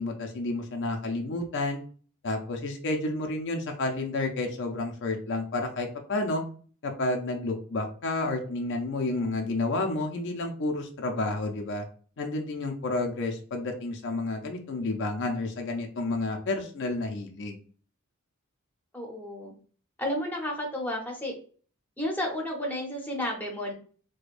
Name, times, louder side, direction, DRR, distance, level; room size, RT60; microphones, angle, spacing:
voice 1, 0.0-1.8 2.2-6.4 6.8-11.8 12.2-17.6, left 2 dB, 55° left, 3 dB, 0.5 m, -30 dB
voice 2, 18.9-19.5 20.0-21.3 22.0-23.7, left 1 dB, 10° left, 0 dB, 0.8 m, -32 dB
4.7 x 2.2 x 2.5 m, 0.42 s
head